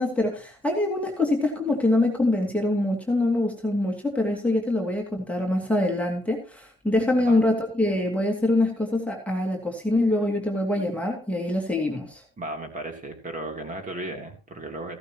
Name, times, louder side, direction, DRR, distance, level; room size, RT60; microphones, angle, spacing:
voice 1, 0.0-12.2, left 2 dB, 5° left, 0 dB, 2.6 m, -24 dB
voice 2, 12.4-15.0, right 2 dB, 20° right, 4 dB, 3.1 m, -35 dB
15.5 x 11.5 x 3.0 m, 0.33 s
supercardioid pair, 120°, 41 cm